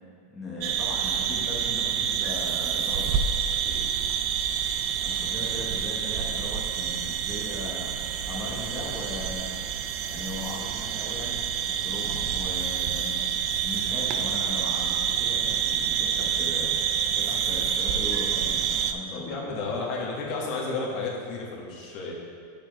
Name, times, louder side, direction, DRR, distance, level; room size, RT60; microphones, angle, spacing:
voice 1, 0.3-3.2 5.0-9.5 10.1-13.2 13.6-16.7 17.1-19.8, left 1 dB, 5° left, -8 dB, 1.0 m, -38 dB
sound 1, 0.6-18.9, right 8 dB, 35° right, 0.4 m, -28 dB
voice 2, 19.1-22.1, left 3 dB, 40° left, -3 dB, 1.4 m, -32 dB
10.0 x 6.9 x 3.1 m, 2.3 s
supercardioid pair, 175°, 0 cm